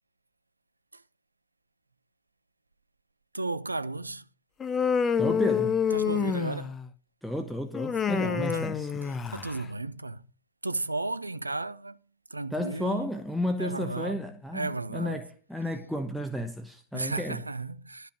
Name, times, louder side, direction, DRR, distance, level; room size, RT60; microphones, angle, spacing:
voice 1, 3.3-4.2 5.9-6.8 8.1-8.7 9.3-10.2 10.6-12.0 12.3-13.1 13.6-14.2 14.5-15.2 16.9-18.1, right 2 dB, 85° right, 0.5 m, -34 dB
Human voice, 4.6-6.9 7.7-9.6, left 7 dB, 20° left, 0.8 m, -28 dB
voice 2, 5.2-5.8 7.2-8.9 12.5-17.4, equal, ahead, 1.1 m, -32 dB
13.0 x 5.4 x 8.0 m
figure-of-eight pair, 90°, 0 cm